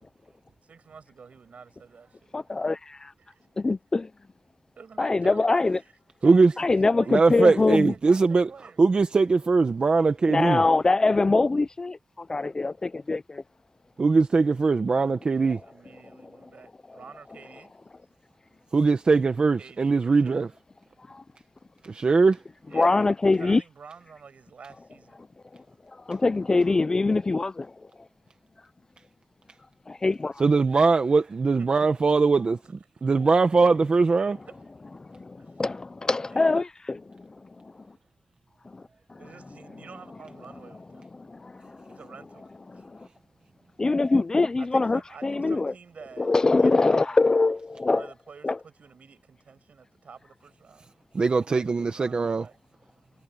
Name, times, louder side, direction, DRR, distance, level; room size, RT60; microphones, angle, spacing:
voice 1, 0.6-2.4 3.2-3.5 4.8-5.9 6.2-8.8 15.3-17.7 19.6-20.5 22.7-25.3 31.6-31.9 34.2-34.3 35.4-35.6 36.2-36.6 39.2-41.1 41.9-42.5 42.7-42.8 44.6-47.2 47.9-50.9 51.3-52.6, right 5 dB, 75° right, 7.4 m, -49 dB
voice 2, 2.3-2.8 3.6-4.1 5.0-5.8 6.6-7.9 10.3-13.4 21.1-21.2 22.7-23.6 26.1-27.7 29.9-30.4 35.0-37.6 38.7-38.8 39.1-39.2 41.2-42.0 42.7-43.1 43.8-45.7 46.2-48.1 48.4-48.6, left 3 dB, 30° left, 0.4 m, -24 dB
voice 3, 7.1-8.5 8.8-10.6 14.0-15.6 18.7-20.5 21.8-22.4 30.4-32.6 33.0-34.4 51.1-52.4, right 4 dB, 45° right, 1.1 m, -21 dB
wide cardioid pair, 150°, 2 cm